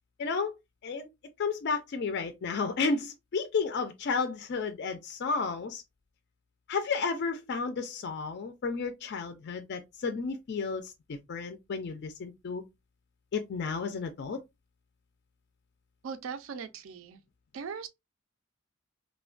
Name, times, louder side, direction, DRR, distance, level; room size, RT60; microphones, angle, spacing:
voice 1, 0.2-0.5 0.8-1.1 1.4-5.8 6.7-12.6 13.3-14.4, left 4 dB, 50° left, 0.3 m, -32 dB
voice 2, 16.0-17.2 17.5-17.9, right 6 dB, 65° right, 0.4 m, -39 dB
3.2 x 2.1 x 2.3 m
head